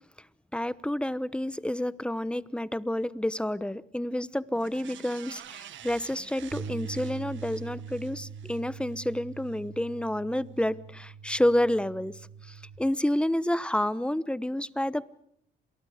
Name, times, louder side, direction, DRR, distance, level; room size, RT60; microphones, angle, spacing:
voice 1, 0.5-12.2 12.5-15.2, left 1 dB, 5° left, 17 dB, 1.0 m, -29 dB
sound 1, 4.6-9.1 9.5-9.6, right 11 dB, 75° right, 1.8 m, -49 dB
Bass guitar, 6.5-12.8, right 6 dB, 55° right, 3.1 m, -42 dB
28.5 x 27.5 x 5.1 m, 0.70 s
cardioid pair, 90°, 20 cm